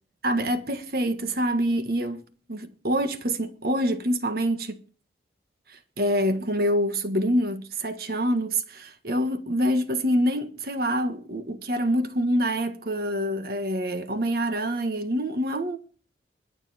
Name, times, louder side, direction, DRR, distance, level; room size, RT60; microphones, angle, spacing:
voice 1, 0.2-2.2 2.5-4.8 5.7-15.8, equal, 55° right, 1.5 m, -26 dB
22.0 x 7.4 x 4.3 m
head